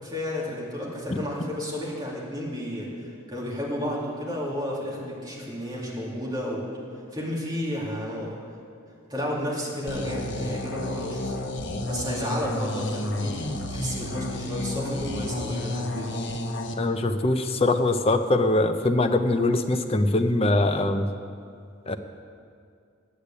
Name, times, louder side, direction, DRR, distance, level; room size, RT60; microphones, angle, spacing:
voice 1, 0.0-6.6 7.1-8.3 9.1-11.3 11.9-13.3 13.7-16.1, left 1 dB, 20° right, -5 dB, 2.5 m, -32 dB
sound 1, 9.9-16.7, left 1 dB, 55° left, 1.0 m, -31 dB
voice 2, 16.8-21.1 21.9-22.0, left 2 dB, 30° left, 7 dB, 0.6 m, -22 dB
10.0 x 8.2 x 8.4 m, 2.3 s
head